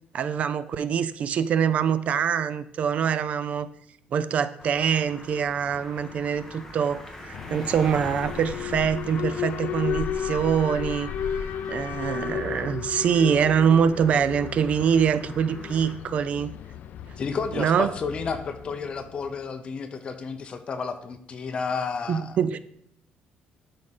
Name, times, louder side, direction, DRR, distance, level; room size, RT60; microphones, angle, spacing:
voice 1, 0.1-3.7 4.1-11.1 11.4-16.5 17.6-17.9 22.1-22.6, right 7 dB, 45° right, 15 dB, 0.4 m, -24 dB
sound 1, 4.6-15.9, left 2 dB, 10° left, 1.2 m, -43 dB
Alarm, 7.3-19.4, left 8 dB, 60° left, 0.4 m, -34 dB
voice 2, 17.2-22.4, left 5 dB, 35° left, 8 dB, 0.8 m, -31 dB
11.5 x 5.0 x 4.2 m, 0.70 s
cardioid pair, 160°, 3 cm